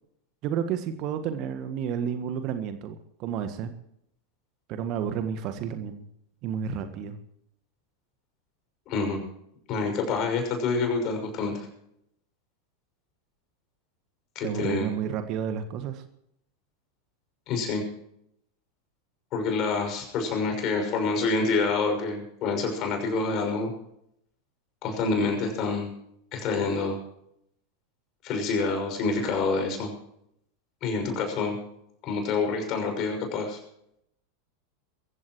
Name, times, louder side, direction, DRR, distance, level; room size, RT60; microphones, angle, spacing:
voice 1, 0.4-3.7 4.7-6.1 6.4-7.2 14.4-16.0, right 8 dB, 40° right, 9 dB, 1.6 m, -31 dB
voice 2, 8.9-9.2 9.7-11.5 14.3-14.9 17.5-17.8 19.3-23.7 24.8-25.9 26.3-27.0 28.2-29.9 30.8-31.6 32.0-33.6, left 4 dB, 40° left, 4 dB, 6.1 m, -27 dB
23.0 x 15.5 x 3.1 m, 0.75 s
figure-of-eight pair, 85°, 0 cm